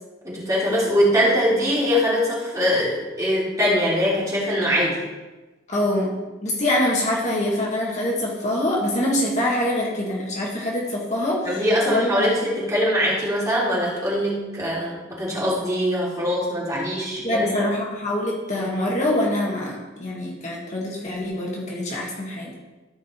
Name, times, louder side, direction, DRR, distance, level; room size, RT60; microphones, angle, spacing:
voice 1, 0.2-5.0 11.4-17.6, equal, 20° right, -7 dB, 3.3 m, -22 dB
voice 2, 5.7-6.1 6.4-11.6 11.9-12.3 17.2-22.5, left 1 dB, 35° left, -3 dB, 1.8 m, -24 dB
14.5 x 5.0 x 4.6 m, 1.2 s
head